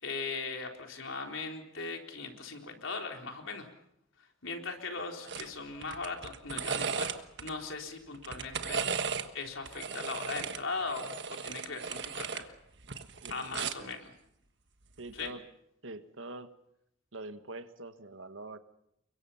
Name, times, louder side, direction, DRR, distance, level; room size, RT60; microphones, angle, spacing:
voice 1, 0.0-3.7 4.4-7.1 7.4-8.8 9.3-12.6 13.3-14.1 15.1-15.3, left 4 dB, 85° left, 2 dB, 4.0 m, -39 dB
sound 1, 5.3-5.5 5.8-7.5 8.1-9.3 9.7-12.5 12.8-13.9 15.1-15.3, right 6 dB, 60° right, 1.5 m, -36 dB
voice 2, 13.2-14.0 15.0-15.4 15.8-16.5 17.1-18.6, right 2 dB, 80° right, 9 dB, 1.6 m, -44 dB
29.5 x 23.5 x 5.8 m, 0.78 s
head